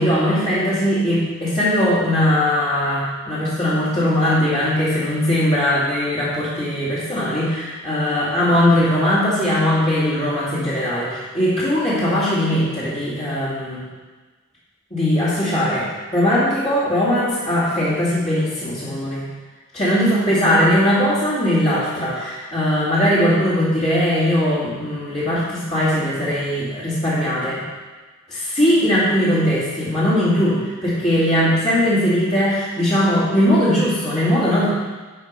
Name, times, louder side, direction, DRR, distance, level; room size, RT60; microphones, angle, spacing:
voice 1, 0.0-13.8 14.9-19.3 19.7-27.6 28.3-34.7, equal, 30° left, -10 dB, 2.5 m, -19 dB
9.4 x 5.0 x 5.4 m, 1.3 s
head